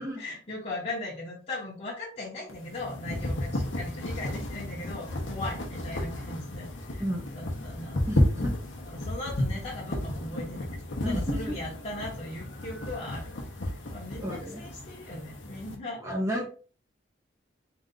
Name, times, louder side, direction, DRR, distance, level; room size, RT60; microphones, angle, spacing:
voice 1, 0.0-7.0 7.3-8.0 8.8-13.3 13.6-16.0, left 2 dB, 30° left, -6 dB, 1.2 m, -39 dB
sound 1, 2.5-15.8, left 1 dB, 75° left, 1.0 m, -33 dB
voice 2, 8.1-8.6 11.0-11.5 14.2-14.6 16.0-16.5, equal, 15° right, -1 dB, 0.7 m, -32 dB
4.0 x 2.5 x 3.8 m, 0.39 s
head